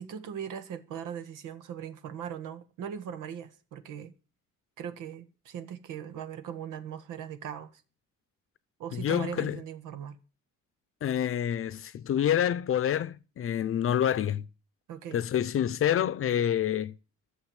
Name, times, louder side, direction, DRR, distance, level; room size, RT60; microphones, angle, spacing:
voice 1, 0.0-4.1 4.8-7.8 8.8-10.2 14.9-15.2, right 8 dB, 85° right, 1.7 m, -39 dB
voice 2, 8.9-9.6 11.0-14.5 15.1-16.9, left 10 dB, 45° left, 0.7 m, -27 dB
13.0 x 7.0 x 9.0 m
cardioid pair, 135°, 31 cm